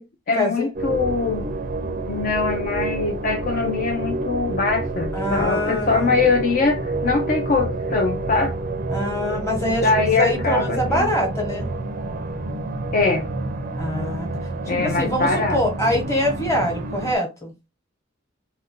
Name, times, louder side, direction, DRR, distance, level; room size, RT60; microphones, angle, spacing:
voice 1, 0.0-1.5 2.1-8.6 9.8-11.1 12.9-13.3 14.7-15.6, left 4 dB, 45° left, 0.4 m, -22 dB
sound 1, 0.7-17.1, right 2 dB, 45° right, 0.4 m, -28 dB
voice 2, 5.1-6.3 8.9-11.6 13.8-14.3 14.7-17.5, left 1 dB, 15° left, 1.1 m, -24 dB
2.5 x 2.2 x 3.6 m
head